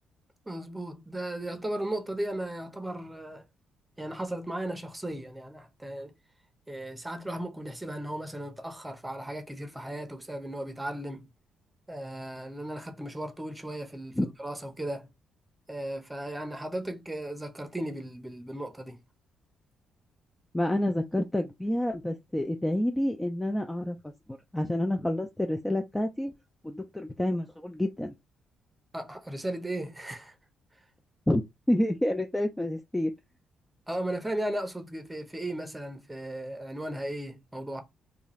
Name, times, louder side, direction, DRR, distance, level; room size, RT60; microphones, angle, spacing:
voice 1, 0.5-3.5 4.0-6.1 6.7-11.3 11.9-15.1 15.7-19.0 28.9-30.4 33.9-37.8, right 1 dB, 10° right, 0.7 m, -36 dB
voice 2, 20.5-24.1 24.5-26.3 26.6-28.1 31.3-31.4 31.7-33.1, left 1 dB, 10° left, 0.3 m, -28 dB
2.5 x 2.3 x 3.0 m
cardioid pair, 90°, 0 cm